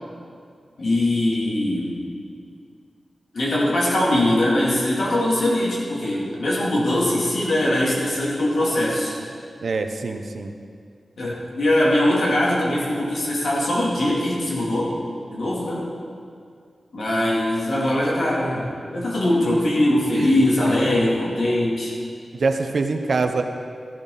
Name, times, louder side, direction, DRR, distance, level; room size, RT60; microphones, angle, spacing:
voice 1, 0.8-2.0 3.3-9.1 11.2-14.9 15.3-15.9 16.9-21.9, left 1 dB, 65° left, -5 dB, 3.2 m, -21 dB
voice 2, 9.6-10.5 19.5-19.6 20.2-20.9 22.3-23.4, right 4 dB, 60° right, 6 dB, 0.8 m, -25 dB
13.5 x 12.0 x 4.2 m, 2.3 s
wide cardioid pair, 140°, 0 cm